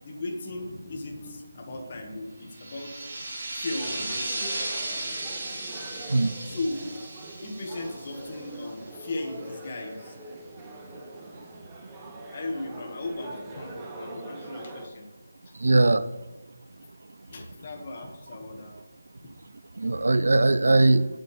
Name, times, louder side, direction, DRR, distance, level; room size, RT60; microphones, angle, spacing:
voice 1, 0.0-3.1 3.5-4.5 6.4-6.8 7.4-10.2 12.3-15.1 15.5-15.6 17.3-18.7, left 2 dB, 30° left, 1.8 m, -36 dB
sound 1, 2.5-8.8, right 2 dB, 35° right, 2.9 m, -35 dB
sound 2, 3.8-14.9, right 2 dB, 10° right, 0.8 m, -43 dB
voice 2, 15.6-16.1 19.8-21.1, right 2 dB, 70° right, 0.6 m, -20 dB
18.5 x 7.5 x 3.5 m
figure-of-eight pair, 175°, 0 cm